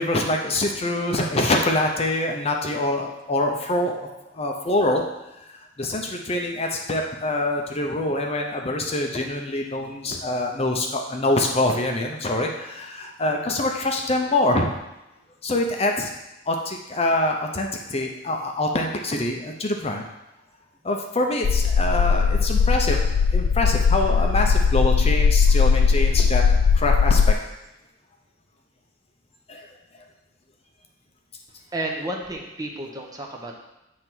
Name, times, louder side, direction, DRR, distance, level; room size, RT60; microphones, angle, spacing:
voice 1, 0.0-4.1 4.3-5.0 5.8-14.7 15.4-16.1 16.5-20.0 20.8-26.4 26.7-27.3 29.5-29.7, left 1 dB, 30° left, 2 dB, 0.6 m, -25 dB
sound 1, 21.4-27.3, left 5 dB, 90° left, 0.3 m, -19 dB
voice 2, 31.7-33.6, right 1 dB, 20° right, 0 dB, 0.9 m, -31 dB
7.5 x 3.4 x 6.0 m, 0.94 s
head